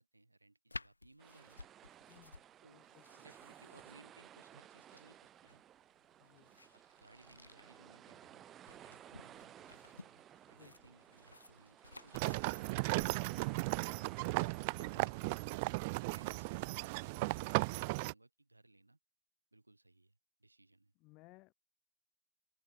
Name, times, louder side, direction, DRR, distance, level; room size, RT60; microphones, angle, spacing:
voice 1, 0.0-1.6 2.6-5.6 6.2-10.2 10.5-14.0 14.4-15.5 15.9-19.0 19.5-20.9, right 2 dB, 85° right, 5.3 m, -64 dB
sound 1, 0.7-14.0, left 2 dB, 80° left, 5.0 m, -56 dB
sound 2, 1.2-15.8, right 11 dB, 30° right, 4.8 m, -57 dB
voice 2, 2.1-3.3 6.2-6.5 10.5-10.7 14.8-14.9 21.0-21.5, left 23 dB, 40° left, 7.9 m, -62 dB
sound 3, 12.1-18.1, right 27 dB, 50° right, 0.5 m, -36 dB
open air
figure-of-eight pair, 90°, 0 cm